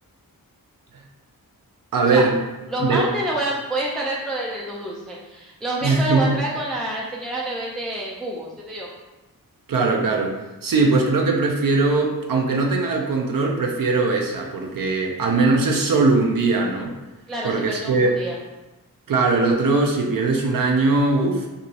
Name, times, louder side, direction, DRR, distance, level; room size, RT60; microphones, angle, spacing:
voice 1, 1.9-2.4 2.8-3.0 5.8-6.4 9.7-10.4 10.6-16.9 17.4-18.1 19.1-21.5, right 3 dB, 70° right, 0 dB, 0.5 m, -20 dB
voice 2, 2.7-8.9 17.3-18.4, right 1 dB, ahead, -4 dB, 0.3 m, -28 dB
2.9 x 2.6 x 2.7 m, 1.1 s
wide cardioid pair, 100°, 35 cm